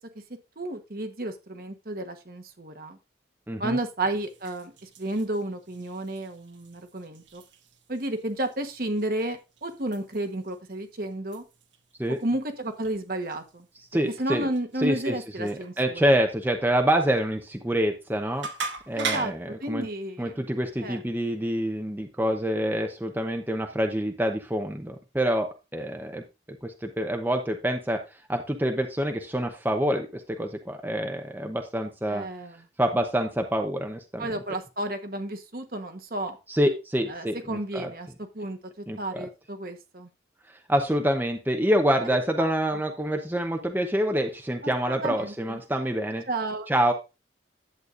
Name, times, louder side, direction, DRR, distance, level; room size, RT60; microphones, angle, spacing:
voice 1, 0.6-3.0 3.6-7.4 7.9-11.4 12.2-13.7 14.2-16.0 18.9-19.3 19.6-20.4 20.8-21.0 32.1-32.7 34.2-36.4 37.1-38.1 38.3-40.1 42.4-42.5 44.6-45.6 46.3-46.7, right 1 dB, 50° right, 6 dB, 1.2 m, -32 dB
voice 2, 3.5-3.8 12.0-12.2 13.9-14.5 14.8-18.5 18.9-19.9 20.2-28.0 28.3-32.3 32.8-34.3 36.5-37.9 38.9-39.3 40.7-46.2 46.7-46.9, equal, 10° right, 4 dB, 0.7 m, -26 dB
sound 1, 4.1-19.5, right 5 dB, 85° right, 1.2 m, -42 dB
11.0 x 8.2 x 2.5 m, 0.27 s
head